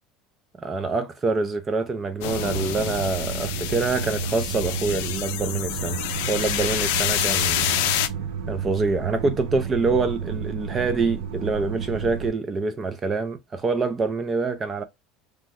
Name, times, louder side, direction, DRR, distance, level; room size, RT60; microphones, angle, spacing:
voice 1, 0.6-8.0 8.5-14.8, right 4 dB, 20° right, 0.3 m, -26 dB
sound 1, 2.2-8.1, left 11 dB, 85° left, 0.4 m, -27 dB
sound 2, 2.3-12.3, right 7 dB, 75° right, 0.6 m, -32 dB
3.1 x 2.1 x 3.4 m
cardioid pair, 155°, 0 cm